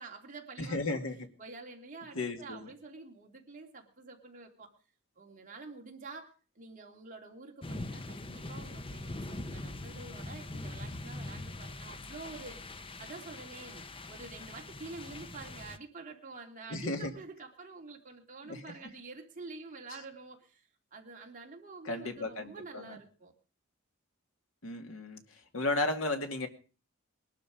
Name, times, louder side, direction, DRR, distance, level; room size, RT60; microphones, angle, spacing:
voice 1, 0.0-1.0 1.4-4.7 5.2-12.7 13.0-23.3, right 3 dB, 40° right, 1 dB, 2.9 m, -48 dB
voice 2, 0.6-1.3 2.2-2.7 16.7-17.1 18.4-18.6 21.8-23.0 24.6-25.2 25.5-26.5, left 2 dB, 75° left, 5 dB, 2.3 m, -34 dB
sound 1, 7.6-15.8, left 2 dB, 25° left, 0.8 m, -42 dB
21.0 x 12.0 x 5.0 m, 0.38 s
head